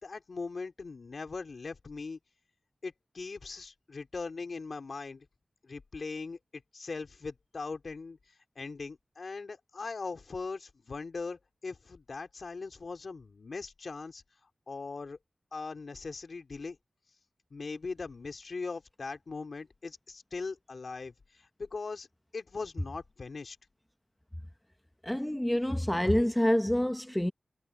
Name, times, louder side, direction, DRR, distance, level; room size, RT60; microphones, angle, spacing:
voice 1, 0.0-2.2 2.8-5.3 5.6-8.2 8.5-14.2 14.7-15.2 15.5-16.8 17.5-21.1 21.6-22.1 22.3-23.6, left 4 dB, 75° left, 3.0 m, -40 dB
voice 2, 25.0-27.3, left 1 dB, 10° left, 0.8 m, -27 dB
wide cardioid pair, 60°, 0 cm